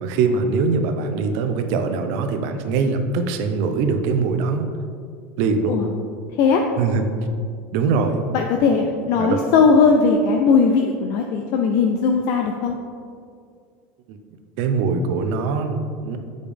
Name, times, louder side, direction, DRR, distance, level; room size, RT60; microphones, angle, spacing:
voice 1, 0.0-4.7 5.4-5.8 6.8-7.1 7.7-8.2 9.2-9.4 14.1-14.2 14.6-16.2, right 4 dB, 60° right, 7 dB, 0.6 m, -22 dB
voice 2, 8.3-12.7, left 5 dB, 50° left, 3 dB, 0.4 m, -18 dB
7.0 x 5.2 x 3.4 m, 2.3 s
supercardioid pair, 155°, 6 cm